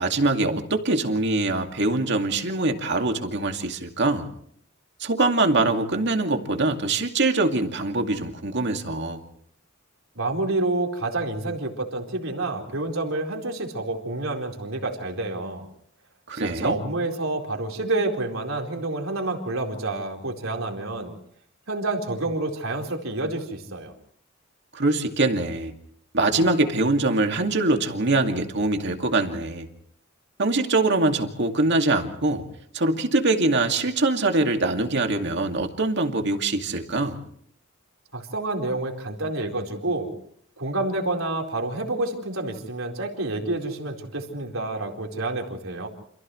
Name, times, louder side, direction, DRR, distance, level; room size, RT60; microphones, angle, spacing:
voice 1, 0.0-4.3 5.0-9.2 16.3-16.8 24.7-25.7 26.1-29.7 30.4-32.5 32.7-37.2, right 2 dB, 55° right, 5 dB, 2.3 m, -23 dB
voice 2, 10.1-15.7 16.3-21.1 21.7-23.9 38.1-40.1 40.6-45.9, right 2 dB, 75° right, 2 dB, 4.3 m, -28 dB
29.5 x 27.5 x 3.2 m, 0.65 s
head